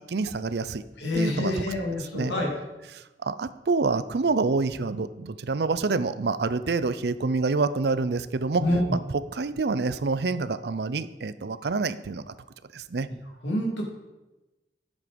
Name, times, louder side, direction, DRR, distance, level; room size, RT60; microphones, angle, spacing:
voice 1, 0.1-0.8 1.1-1.6 2.0-2.3 2.9-8.6 9.1-12.3 12.7-13.1, right 3 dB, 65° right, 14 dB, 0.5 m, -27 dB
voice 2, 1.0-2.5 8.6-8.8 13.4-13.9, left 1 dB, 85° left, 0 dB, 2.5 m, -27 dB
11.0 x 7.3 x 5.2 m, 1.1 s
head